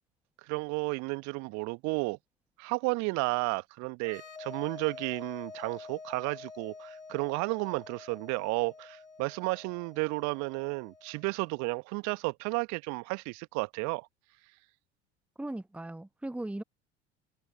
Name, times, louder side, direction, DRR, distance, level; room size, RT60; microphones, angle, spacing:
voice 1, 0.4-2.2 2.6-14.1, right 27 dB, 50° right, 1.2 m, -32 dB
sound 1, 4.0-11.5, left 4 dB, 85° left, 4.8 m, -48 dB
voice 2, 15.4-16.6, right 1 dB, 5° right, 1.1 m, -38 dB
figure-of-eight pair, 65°, 35 cm